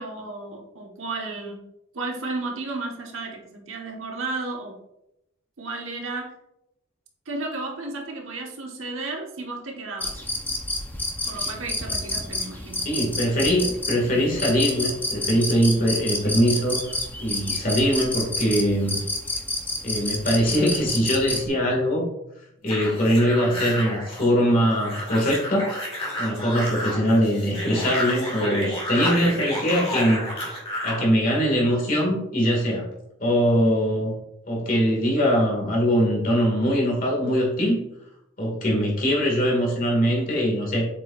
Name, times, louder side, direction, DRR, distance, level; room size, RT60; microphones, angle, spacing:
voice 1, 0.0-1.6 1.9-4.7 5.6-6.3 7.3-10.2 11.3-12.8 13.6-13.7, right 3 dB, 85° right, 0 dB, 1.3 m, -33 dB
sound 1, 10.0-21.4, left 2 dB, 10° left, 0.7 m, -29 dB
voice 2, 12.8-16.9 17.2-19.0 19.8-22.1 22.6-25.7 26.2-30.3 30.8-32.9 33.2-34.1 34.5-37.8 38.4-40.9, equal, 45° left, -2 dB, 2.1 m, -22 dB
sound 2, 22.7-31.1, equal, 30° left, 1.8 m, -31 dB
7.4 x 5.3 x 2.5 m, 0.84 s
head